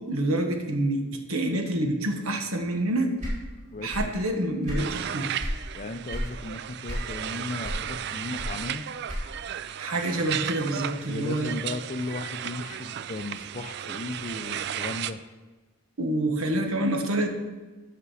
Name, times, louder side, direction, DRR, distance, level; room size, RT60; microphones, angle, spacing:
voice 1, 0.0-3.1 3.8-5.3 9.8-11.5 16.0-17.3, right 1 dB, 75° right, 5 dB, 1.3 m, -27 dB
sound 1, 3.2-4.2 4.5-5.6 6.1-6.4 6.8-7.3 7.6-9.5, equal, 35° right, 3.1 m, -32 dB
voice 2, 3.7-4.4 5.7-8.9 11.1-15.2, left 2 dB, 35° left, 10 dB, 0.5 m, -36 dB
sound 2, 4.8-15.1, right 10 dB, 50° right, 0.3 m, -35 dB
8.4 x 6.0 x 6.3 m, 1.2 s
head